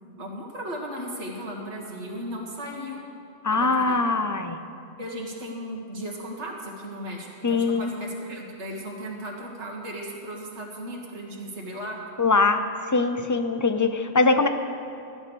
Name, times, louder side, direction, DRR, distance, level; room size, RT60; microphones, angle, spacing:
voice 1, 0.2-3.0 3.5-4.0 5.0-12.0, equal, 90° right, -2 dB, 2.2 m, -36 dB
voice 2, 3.4-4.6 7.4-7.9 12.2-14.5, left 3 dB, 25° left, 8 dB, 0.4 m, -22 dB
13.0 x 11.0 x 6.3 m, 2.4 s
omnidirectional pair, 1.1 m